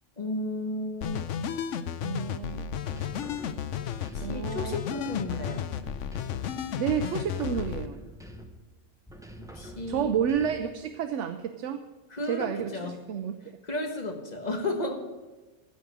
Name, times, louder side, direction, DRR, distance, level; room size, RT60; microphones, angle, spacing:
voice 1, 0.2-1.2 4.1-5.7 9.4-10.1 12.1-13.0 13.6-15.0, left 2 dB, 35° left, 4 dB, 1.5 m, -33 dB
sound 1, 1.0-7.9, left 8 dB, 85° left, 1.0 m, -33 dB
voice 2, 2.0-2.6 4.2-4.8 6.8-8.0 9.9-11.8 12.3-13.6, right 8 dB, 80° right, 8 dB, 1.0 m, -30 dB
sound 2, 2.8-4.5 4.9-6.6 7.0-8.7 9.1-10.8, equal, 5° right, 0.8 m, -46 dB
15.5 x 5.3 x 8.2 m, 1.2 s
omnidirectional pair, 1.2 m